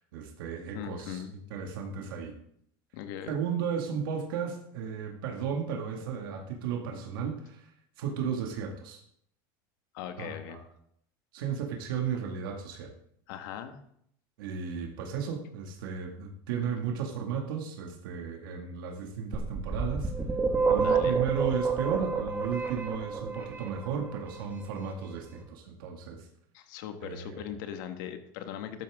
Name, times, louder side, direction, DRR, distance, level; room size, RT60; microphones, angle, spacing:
voice 1, 0.1-1.2 1.5-2.4 3.3-7.7 8.0-9.0 10.2-10.6 11.3-12.9 14.4-20.1 20.7-26.3 27.0-27.4, right 7 dB, 90° right, 1 dB, 2.1 m, -34 dB
voice 2, 0.7-1.3 2.9-3.4 9.9-10.6 13.3-13.8 20.7-21.2 26.5-28.8, left 9 dB, 70° left, 7 dB, 1.6 m, -39 dB
sound 1, 19.3-24.2, right 4 dB, 15° right, 1.9 m, -28 dB
13.0 x 12.0 x 3.7 m, 0.69 s
supercardioid pair, 145°, 11 cm